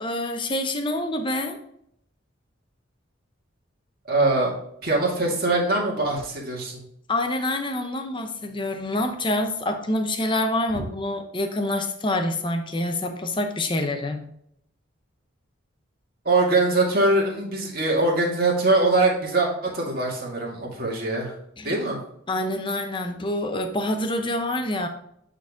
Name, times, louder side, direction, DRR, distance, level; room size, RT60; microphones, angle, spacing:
voice 1, 0.0-1.6 7.1-14.3 21.6-21.8 22.3-24.9, left 1 dB, 25° left, 6 dB, 0.8 m, -26 dB
voice 2, 4.1-4.5 4.8-6.8 16.2-21.3 21.6-22.0, right 2 dB, 50° right, -2 dB, 2.1 m, -22 dB
9.0 x 4.0 x 3.6 m, 0.73 s
head